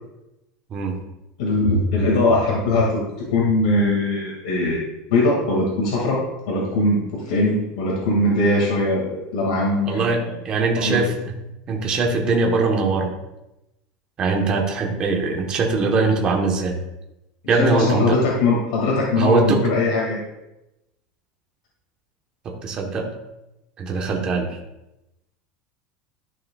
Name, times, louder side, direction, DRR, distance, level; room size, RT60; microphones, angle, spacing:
voice 1, 1.4-4.8 5.1-6.2 6.5-10.3 10.8-11.0 17.6-20.2, left 2 dB, 85° left, -3 dB, 2.1 m, -21 dB
voice 2, 9.8-11.1 11.7-13.1 14.2-16.8 17.5-18.2 19.2-19.6 22.4-23.1 23.8-24.6, right 3 dB, 25° right, 1 dB, 1.1 m, -21 dB
11.5 x 6.2 x 2.3 m, 0.93 s
supercardioid pair, 180°, 4 cm